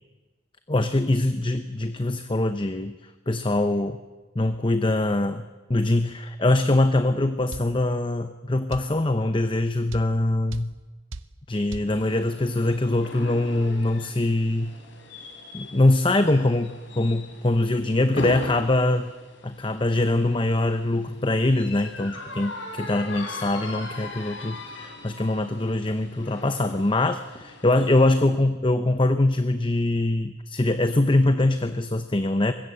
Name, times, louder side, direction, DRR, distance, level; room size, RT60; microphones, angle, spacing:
voice 1, 0.7-3.0 3.3-4.0 4.4-5.4 5.7-10.7 11.5-14.7 15.5-19.1 19.4-32.5, left 2 dB, 25° left, 9 dB, 0.8 m, -23 dB
sound 1, 7.5-7.7 8.7-8.9 9.9-10.1 10.5-10.7 11.1-11.3 11.7-11.9, right 3 dB, 85° right, 0.8 m, -36 dB
sound 2, 11.9-28.1, left 2 dB, 70° left, 3.9 m, -40 dB
24.0 x 21.0 x 7.8 m, 1.2 s
head